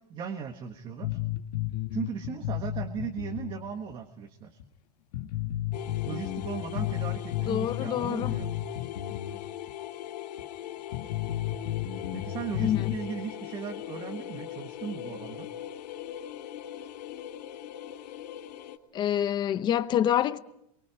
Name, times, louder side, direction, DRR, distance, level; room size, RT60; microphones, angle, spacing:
voice 1, 0.1-1.2 1.9-4.6 6.0-8.5 12.1-15.5, right 7 dB, 25° right, 1.5 m, -37 dB
sound 1, 1.0-3.6 3.9-4.0 4.6-4.7 5.1-9.4 9.7-9.8 10.4-10.5 10.9-13.0, left 13 dB, 70° left, 1.7 m, -33 dB
sound 2, 5.7-18.8, left 11 dB, 85° left, 2.9 m, -40 dB
voice 2, 7.5-8.3 12.6-13.0 18.9-20.4, left 10 dB, 20° left, 0.8 m, -27 dB
27.5 x 23.5 x 5.1 m
supercardioid pair, 170°, 21 cm